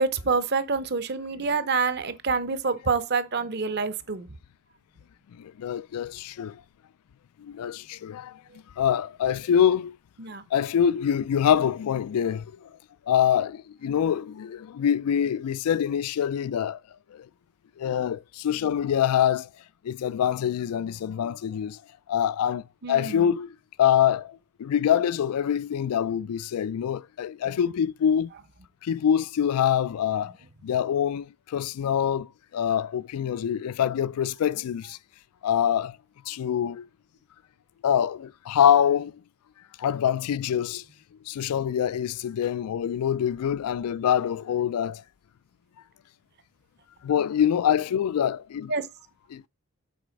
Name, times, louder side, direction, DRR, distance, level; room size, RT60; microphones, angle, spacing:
voice 1, 0.0-4.3 10.2-10.4 22.8-23.3 48.7-48.9, right 4 dB, 45° right, 0.7 m, -27 dB
voice 2, 5.4-6.6 7.4-8.4 8.8-10.0 10.5-12.7 13.1-16.8 17.1-17.3 17.8-19.5 19.8-21.8 22.1-23.5 23.8-28.3 28.8-30.3 30.6-32.3 32.5-35.0 35.4-36.0 36.3-36.9 37.8-39.1 39.8-40.8 41.3-45.0 47.0-48.7 49.3-49.5, left 9 dB, 85° left, 0.3 m, -25 dB
7.8 x 4.1 x 5.1 m
head